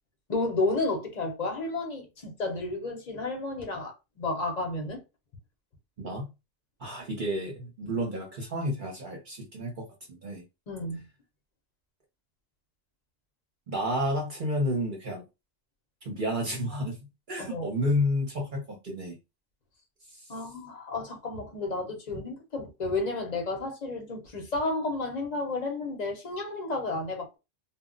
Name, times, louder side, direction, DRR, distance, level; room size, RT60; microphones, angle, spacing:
voice 1, 0.3-5.0 7.8-8.0 10.7-11.0 17.4-17.6 20.3-27.4, left 2 dB, 40° left, 0.7 m, -32 dB
voice 2, 6.0-6.3 6.8-9.9 10.2-10.4 13.7-15.2 16.0-17.0 17.3-19.1 20.1-20.2, equal, 50° right, 0.8 m, -30 dB
2.3 x 2.0 x 3.7 m
omnidirectional pair, 1.2 m